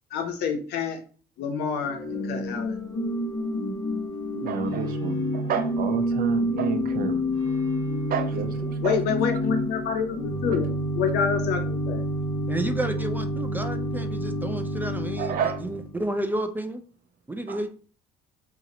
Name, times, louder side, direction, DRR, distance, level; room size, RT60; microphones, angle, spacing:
voice 1, 0.1-1.0 1.4-2.8 8.8-12.0, left 6 dB, 75° left, 0.8 m, -28 dB
Organ / Church bell, 1.8-16.0, equal, 20° left, 0.9 m, -28 dB
voice 2, 4.3-7.3 8.1-9.0 10.0-10.1 10.5-10.6 15.2-15.6 17.5-17.6, right 7 dB, 60° right, 0.6 m, -30 dB
voice 3, 12.5-16.8 17.3-17.7, right 1 dB, 10° right, 0.3 m, -31 dB
2.7 x 2.5 x 4.1 m
cardioid pair, 110°, 17 cm